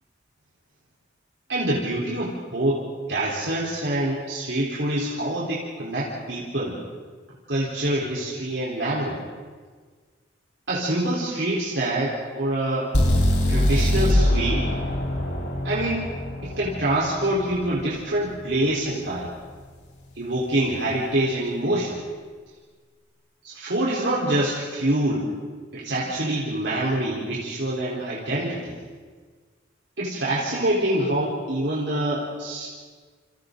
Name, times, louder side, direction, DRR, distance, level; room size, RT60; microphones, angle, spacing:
voice 1, 1.5-2.8 3.1-6.8 7.5-9.2 10.7-12.9 13.5-14.7 15.6-16.2 16.4-19.3 20.2-22.0 23.4-25.3 25.7-28.7 30.0-32.7, right 1 dB, 60° right, -6 dB, 4.3 m, -25 dB
sound 1, 12.9-16.9, left 1 dB, 60° left, 4.3 m, -22 dB
30.0 x 29.5 x 4.0 m, 1.5 s
head